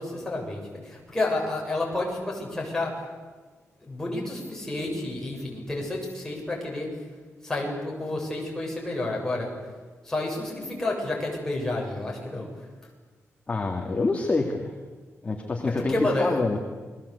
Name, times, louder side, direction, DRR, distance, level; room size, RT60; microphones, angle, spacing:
voice 1, 0.0-3.0 3.8-7.0 7.4-9.5 10.0-12.5 15.6-16.4, left 2 dB, 10° left, -2 dB, 7.8 m, -30 dB
voice 2, 13.5-14.7 15.2-16.6, left 3 dB, 25° left, 2 dB, 2.4 m, -26 dB
29.5 x 22.0 x 8.4 m, 1.4 s
wide cardioid pair, 160°, 5 cm